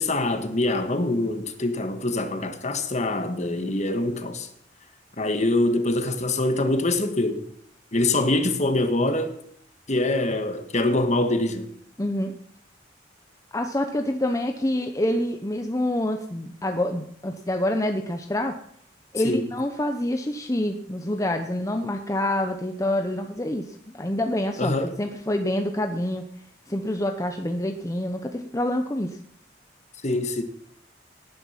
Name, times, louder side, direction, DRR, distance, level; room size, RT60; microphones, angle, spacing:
voice 1, 0.0-4.5 5.2-7.4 7.9-9.3 9.9-11.7 19.2-19.5 24.6-24.9 30.0-30.4, left 2 dB, 40° left, 1.7 m, -24 dB
voice 2, 12.0-12.3 13.5-18.6 19.1-26.3 26.7-29.2, left 1 dB, 20° left, 0.9 m, -27 dB
18.5 x 10.0 x 5.9 m
head